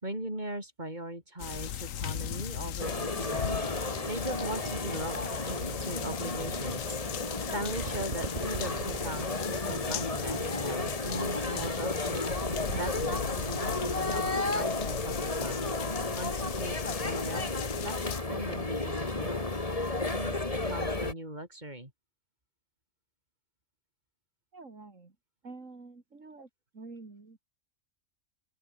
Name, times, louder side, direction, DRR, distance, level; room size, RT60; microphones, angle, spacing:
voice 1, 0.0-7.2 7.5-17.5 17.8-19.5 20.1-20.4 20.6-21.9, right 1 dB, 35° right, 7.0 m, -40 dB
sound 1, 1.4-18.2, left 10 dB, 90° left, 1.3 m, -38 dB
sound 2, 2.8-21.1, left 2 dB, 30° left, 2.4 m, -33 dB
sound 3, 4.0-4.1 4.4-7.3 7.7-14.1 14.4-14.6 14.9-17.1, right 4 dB, 55° right, 2.1 m, -42 dB
voice 2, 24.5-25.2 25.4-27.4, right 3 dB, 75° right, 3.5 m, -48 dB
open air
omnidirectional pair, 1.3 m